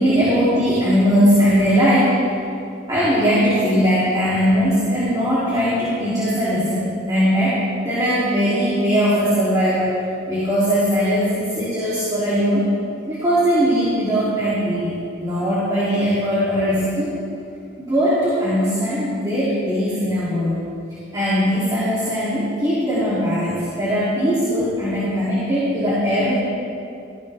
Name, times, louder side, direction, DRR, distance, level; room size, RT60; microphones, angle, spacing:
voice 1, 0.0-2.2 2.9-9.9 10.3-12.7 13.0-17.1 17.9-20.6 21.1-26.3, equal, 20° right, -11 dB, 3.0 m, -19 dB
15.5 x 14.0 x 3.5 m, 2.5 s
head